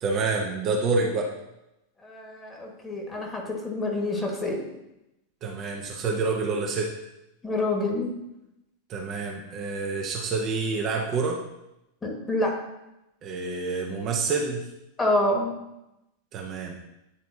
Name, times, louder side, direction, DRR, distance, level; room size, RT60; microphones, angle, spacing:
voice 1, 0.0-1.3 5.4-6.9 8.9-11.4 13.2-14.7 16.3-16.8, right 4 dB, 30° right, 0 dB, 0.8 m, -27 dB
voice 2, 2.0-4.6 7.4-8.1 12.0-12.5 15.0-15.5, left 1 dB, 15° left, 0 dB, 1.7 m, -27 dB
9.6 x 4.1 x 2.8 m, 0.90 s
figure-of-eight pair, 90°, 0 cm